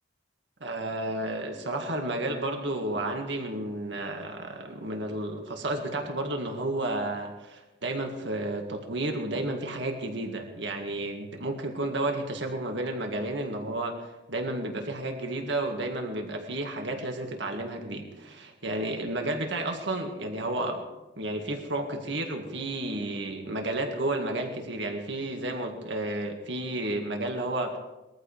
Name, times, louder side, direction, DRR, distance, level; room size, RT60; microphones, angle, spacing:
voice 1, 0.6-20.8 21.2-27.8, right 1 dB, 70° right, 3 dB, 2.0 m, -32 dB
21.5 x 14.0 x 3.5 m, 1.1 s
head